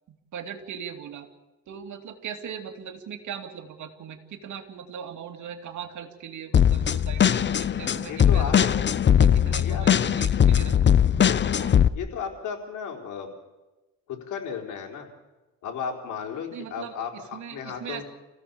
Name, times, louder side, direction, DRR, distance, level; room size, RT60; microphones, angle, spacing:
voice 1, 0.1-1.3 1.7-8.8 9.2-10.9 11.6-11.8 16.5-18.0, right 8 dB, 70° right, 5 dB, 2.7 m, -39 dB
sound 1, 6.5-11.9, left 8 dB, 35° left, 0.7 m, -20 dB
voice 2, 8.1-8.5 9.6-9.9 11.9-13.3 14.1-15.1 15.6-18.0, left 7 dB, 80° left, 2 dB, 4.1 m, -34 dB
29.0 x 16.0 x 7.0 m, 1.1 s
cardioid pair, 90°, 30 cm